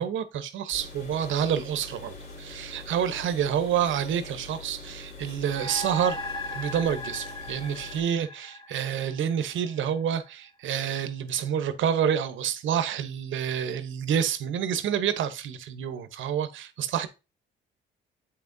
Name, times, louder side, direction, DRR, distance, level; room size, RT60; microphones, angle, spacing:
voice 1, 0.0-6.2 6.5-17.1, right 8 dB, 75° right, 0.9 m, -28 dB
sound 1, 0.7-8.0, left 2 dB, 65° left, 3.1 m, -44 dB
sound 2, 5.4-10.1, left 1 dB, 25° left, 1.1 m, -38 dB
8.1 x 5.9 x 2.6 m
cardioid pair, 90°, 20 cm